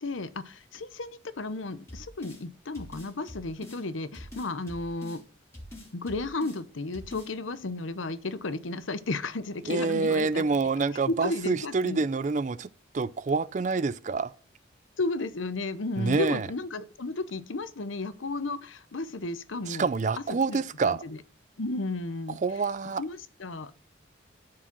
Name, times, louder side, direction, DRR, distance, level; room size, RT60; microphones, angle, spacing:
voice 1, 0.0-5.2 5.9-10.4 11.1-12.0 15.0-19.9 20.5-21.2 21.6-22.4 23.0-23.7, left 3 dB, 85° left, 0.8 m, -33 dB
sound 1, 1.9-2.4 2.7-3.8 4.1-5.2 5.5-6.6 6.9-7.3, left 1 dB, 15° left, 2.9 m, -44 dB
voice 2, 9.7-14.3 16.0-16.5 19.7-21.0 22.4-23.0, right 4 dB, 40° right, 0.4 m, -27 dB
12.5 x 4.9 x 6.0 m
head